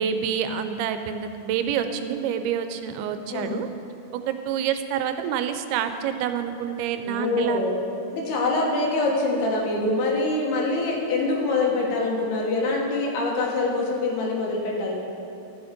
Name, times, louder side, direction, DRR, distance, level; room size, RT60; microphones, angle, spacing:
voice 1, 0.0-3.7 4.1-7.7, right 8 dB, 85° right, 8 dB, 2.6 m, -27 dB
voice 2, 7.1-7.7 8.1-14.9, left 2 dB, 90° left, -2 dB, 3.4 m, -24 dB
13.0 x 7.0 x 5.1 m, 2.6 s
omnidirectional pair, 4.4 m